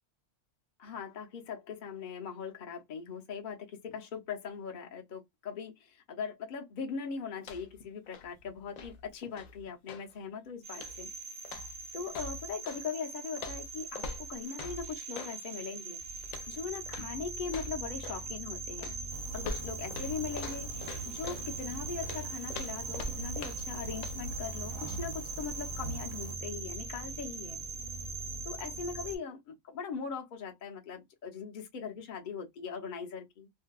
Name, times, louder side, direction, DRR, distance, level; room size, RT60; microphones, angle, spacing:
voice 1, 0.8-11.1 11.9-18.9 19.3-27.6 28.4-33.5, left 6 dB, 50° left, 0.7 m, -40 dB
sound 1, 7.4-7.8 8.1-10.1 10.7-11.1 11.4-12.8 13.4-15.4 16.2-16.6 16.9-17.1 17.5-18.3 18.8-21.5 22.0-23.8 24.0-24.2, left 4 dB, 85° left, 0.3 m, -44 dB
sound 2, 10.6-29.2, right 3 dB, 40° right, 0.8 m, -41 dB
sound 3, 19.1-26.3, right 2 dB, 90° right, 1.0 m, -43 dB
2.6 x 2.1 x 2.2 m
omnidirectional pair, 1.3 m